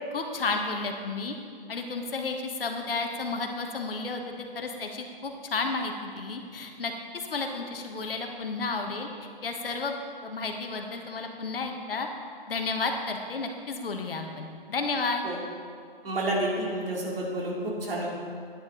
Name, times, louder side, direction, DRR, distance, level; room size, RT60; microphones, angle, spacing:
voice 1, 0.1-1.4 1.7-4.2 4.5-9.1 9.4-12.1 12.5-15.2, left 3 dB, 70° left, 4 dB, 1.4 m, -32 dB
voice 2, 16.0-18.1, right 1 dB, 70° right, -3 dB, 2.8 m, -29 dB
9.9 x 9.7 x 3.9 m, 2.1 s
figure-of-eight pair, 125°, 29 cm